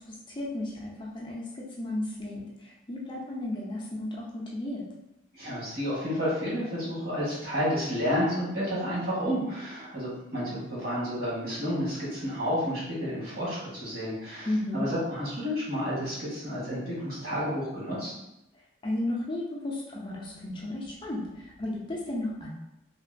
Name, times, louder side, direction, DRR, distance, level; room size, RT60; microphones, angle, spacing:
voice 1, 0.0-4.8 14.5-14.9 18.8-22.5, left 1 dB, 25° left, -4 dB, 0.4 m, -34 dB
voice 2, 5.3-14.5 14.7-18.1, equal, 50° right, -8 dB, 1.5 m, -30 dB
2.9 x 2.5 x 2.5 m, 0.87 s
head